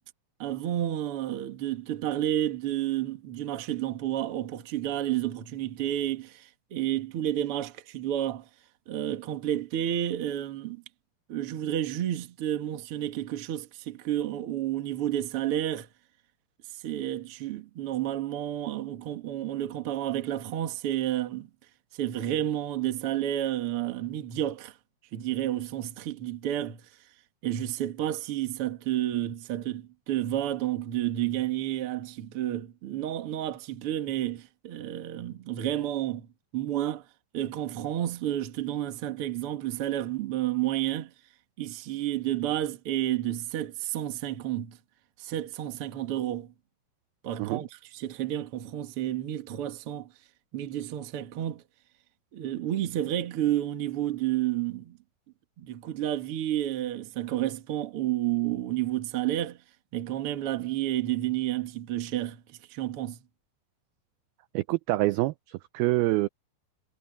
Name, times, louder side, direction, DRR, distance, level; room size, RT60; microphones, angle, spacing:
voice 1, 0.4-8.4 8.9-10.8 11.3-15.9 16.8-21.5 21.9-24.7 25.1-26.8 27.4-36.3 36.5-37.0 37.3-41.1 41.6-44.8 45.2-46.5 47.2-47.7 47.9-50.1 50.5-51.6 52.3-55.0 55.6-59.6 59.9-62.4 62.7-63.2, right 12 dB, 55° right, 1.5 m, -30 dB
voice 2, 64.5-66.3, right 19 dB, 85° right, 2.2 m, -26 dB
omnidirectional pair, 4.9 m